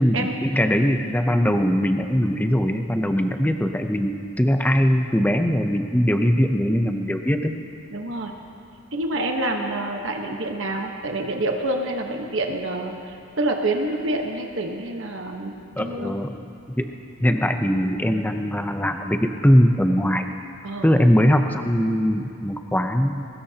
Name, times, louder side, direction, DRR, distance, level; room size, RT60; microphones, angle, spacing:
voice 1, 0.0-7.5 15.8-16.5 16.8-16.9 17.2-20.2 20.8-23.3, equal, 10° left, 5 dB, 0.6 m, -21 dB
voice 2, 7.9-8.3 8.9-16.2 20.6-21.0, right 2 dB, 60° right, 2 dB, 1.2 m, -27 dB
22.0 x 20.0 x 2.9 m, 2.6 s
head